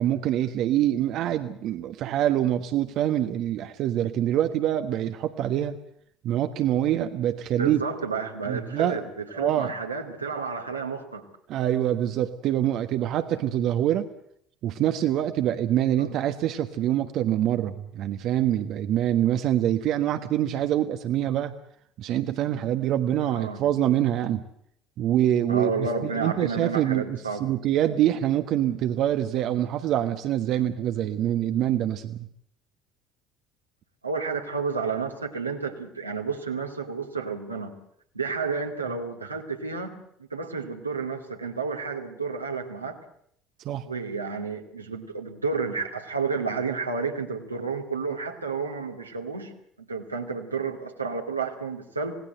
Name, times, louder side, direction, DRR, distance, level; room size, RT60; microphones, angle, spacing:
voice 1, 0.0-5.8 6.2-7.8 8.5-9.0 9.3-9.7 11.5-14.1 14.6-21.5 22.0-24.4 25.0-32.3 43.6-43.8, right 11 dB, 55° right, 8 dB, 1.4 m, -25 dB
voice 2, 7.6-11.3 16.0-16.1 23.2-23.6 25.5-27.5 34.0-37.8 38.1-40.0 40.3-43.0 43.8-49.5 49.8-52.2, right 4 dB, 90° right, 2 dB, 2.4 m, -31 dB
27.0 x 18.5 x 7.9 m, 0.69 s
figure-of-eight pair, 60°, 0 cm